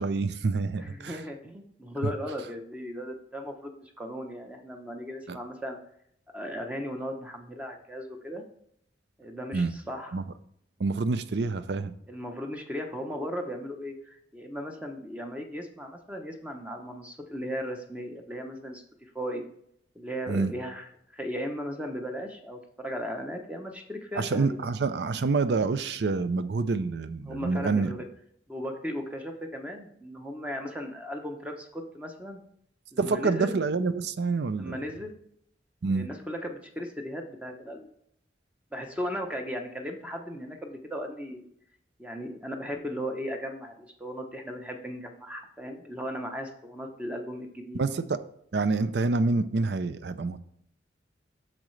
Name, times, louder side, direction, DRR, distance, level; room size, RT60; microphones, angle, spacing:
voice 1, 0.0-1.2 5.3-5.4 9.5-9.7 10.1-10.2 10.8-11.9 20.3-20.5 24.2-27.9 33.0-34.8 35.8-36.1 47.7-48.2 48.5-50.4, right 4 dB, 65° right, 13 dB, 0.5 m, -27 dB
voice 2, 0.8-5.8 6.3-8.4 9.2-10.1 12.1-19.4 20.0-20.8 21.1-24.7 27.3-28.0 28.5-32.4 32.9-33.6 34.5-35.2 35.9-37.9 38.7-41.5 42.0-47.8, equal, 5° right, 4 dB, 0.7 m, -36 dB
8.5 x 6.3 x 3.2 m, 0.72 s
head